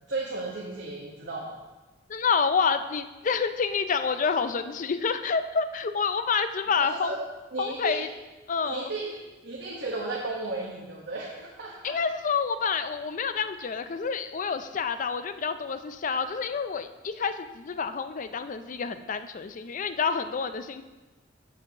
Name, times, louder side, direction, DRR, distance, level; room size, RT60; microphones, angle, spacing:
voice 1, 0.1-1.5 6.8-7.2 7.5-8.0 8.6-9.1 9.4-12.0, right 3 dB, 65° right, -3 dB, 1.2 m, -34 dB
voice 2, 2.1-7.1 7.6-8.1 8.5-8.9 11.8-20.8, left 5 dB, 45° left, 10 dB, 0.4 m, -28 dB
14.0 x 6.3 x 2.9 m, 1.2 s
head